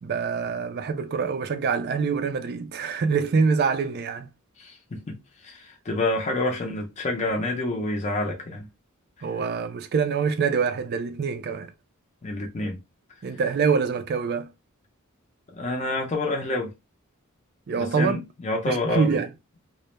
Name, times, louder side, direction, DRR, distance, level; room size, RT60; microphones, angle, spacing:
voice 1, 0.0-4.3 9.2-11.7 13.2-14.5 17.7-18.2 18.7-19.3, right 5 dB, 50° right, 0.4 m, -25 dB
voice 2, 4.6-8.7 12.2-12.8 15.5-16.7 17.8-19.2, left 2 dB, 30° left, 0.5 m, -28 dB
2.2 x 2.1 x 2.9 m
head